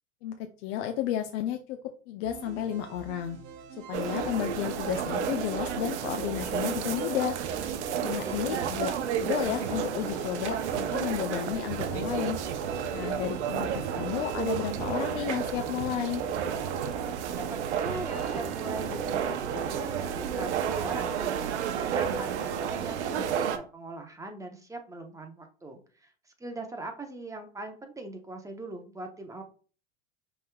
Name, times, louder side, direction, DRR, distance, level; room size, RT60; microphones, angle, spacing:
voice 1, 0.2-1.8 2.1-3.4 3.8-7.4 8.0-8.9 9.2-12.4 12.9-16.2, left 11 dB, 65° left, 6 dB, 0.6 m, -32 dB
sound 1, 2.2-21.0, right 5 dB, 55° right, 0.9 m, -46 dB
sound 2, 3.9-23.6, right 8 dB, 80° right, 0.7 m, -31 dB
voice 2, 8.1-8.7 17.3-21.3 21.7-26.1 26.4-29.4, right 2 dB, 10° right, 4 dB, 0.9 m, -41 dB
5.3 x 3.4 x 2.3 m, 0.39 s
hypercardioid pair, 100°, 34 cm